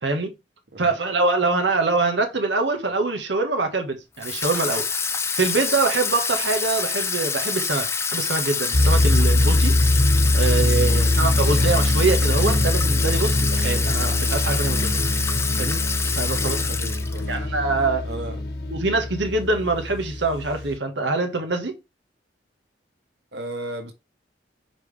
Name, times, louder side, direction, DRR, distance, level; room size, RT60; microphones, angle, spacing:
voice 1, 0.8-4.8 5.4-9.8 10.3-15.0 15.6-15.8 16.1-16.6 17.3-18.0 18.7-21.8, right 3 dB, 85° right, 1.5 m, -24 dB
Water tap faucet / Sink (filling or washing), 4.2-17.4, left 5 dB, 15° left, 0.5 m, -27 dB
sound 1, 8.7-20.8, left 1 dB, 60° left, 1.4 m, -22 dB
voice 2, 16.3-17.3 17.8-18.4 23.3-23.9, right 1 dB, 65° right, 1.5 m, -35 dB
6.0 x 5.3 x 3.4 m
head